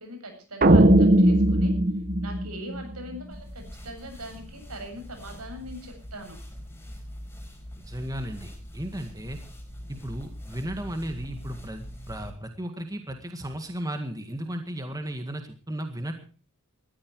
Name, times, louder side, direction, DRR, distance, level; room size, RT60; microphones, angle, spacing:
voice 1, 0.0-1.7 2.2-6.4, equal, 80° right, 5 dB, 7.8 m, -41 dB
sound 1, 0.6-3.1, right 1 dB, 40° right, 1.1 m, -19 dB
sound 2, 3.3-12.3, equal, 10° left, 4.9 m, -42 dB
voice 2, 7.8-9.4 9.9-16.2, right 1 dB, 15° right, 6 dB, 1.8 m, -35 dB
20.0 x 13.5 x 4.7 m, 0.38 s
head